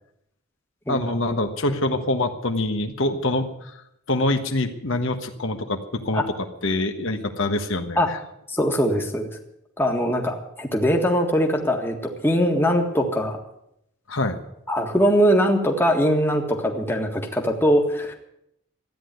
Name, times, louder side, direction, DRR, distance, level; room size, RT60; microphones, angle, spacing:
voice 1, 0.9-3.7 4.1-6.2 6.6-8.2 14.1-14.4, left 2 dB, 60° left, 6 dB, 1.3 m, -25 dB
voice 2, 8.5-9.3 9.8-13.4 14.7-18.1, equal, 10° left, 2 dB, 1.7 m, -21 dB
14.0 x 10.0 x 9.2 m, 0.78 s
head